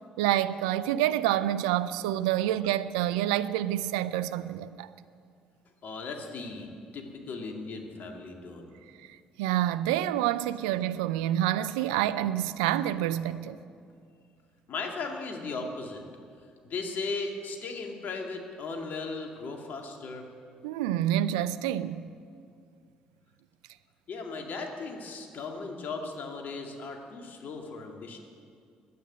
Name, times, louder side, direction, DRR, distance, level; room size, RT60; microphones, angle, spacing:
voice 1, 0.2-4.9 9.4-13.6 20.6-22.1, right 12 dB, 85° right, 0.4 m, -27 dB
voice 2, 5.8-8.8 14.7-16.0 16.6-20.3 24.1-28.2, left 3 dB, 60° left, 2.2 m, -37 dB
12.0 x 9.3 x 9.3 m
hypercardioid pair, 55°, 4 cm